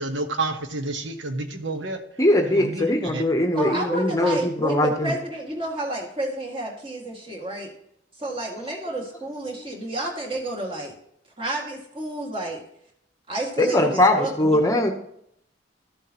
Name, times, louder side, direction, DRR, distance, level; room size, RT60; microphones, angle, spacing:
voice 1, 0.0-2.0 2.5-3.2, right 2 dB, 80° right, 6 dB, 1.2 m, -29 dB
voice 2, 2.2-5.1 13.6-14.9, left 1 dB, 20° left, 4 dB, 0.8 m, -21 dB
voice 3, 3.5-7.7 8.2-10.9 11.4-12.6 13.3-14.6, right 2 dB, 30° right, -1 dB, 2.0 m, -30 dB
13.5 x 7.2 x 2.9 m, 0.72 s
head